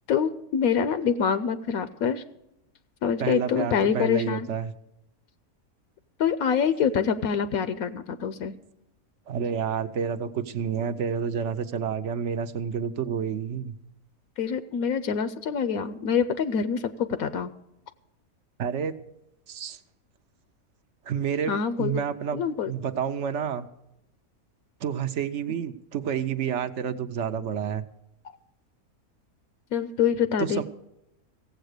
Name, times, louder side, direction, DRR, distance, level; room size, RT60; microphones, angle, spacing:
voice 1, 0.1-2.2 3.0-4.5 6.2-8.6 14.4-17.5 21.5-22.0 22.3-22.7 29.7-30.6, left 7 dB, 75° left, 12 dB, 1.1 m, -25 dB
voice 2, 3.2-4.7 9.3-13.7 18.6-19.0 19.5-19.8 21.0-23.7 24.8-27.8 30.4-30.6, right 7 dB, 60° right, 10 dB, 0.9 m, -29 dB
16.0 x 7.9 x 6.5 m, 0.86 s
omnidirectional pair, 1.5 m